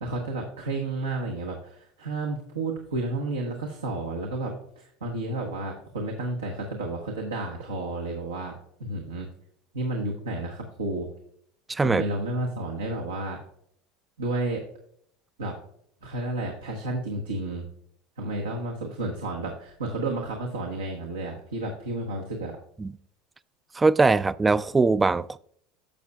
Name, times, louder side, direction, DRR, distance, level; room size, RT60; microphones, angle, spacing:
voice 1, 0.0-8.5 8.8-9.3 9.7-11.1 11.8-13.4 14.2-14.6 15.4-15.5 16.0-17.6 18.2-22.6, right 2 dB, 85° right, 1.0 m, -31 dB
voice 2, 11.7-12.0 22.8-22.9 23.8-25.4, right 3 dB, 15° right, 0.3 m, -21 dB
10.5 x 6.8 x 2.3 m
hypercardioid pair, 75°, 0 cm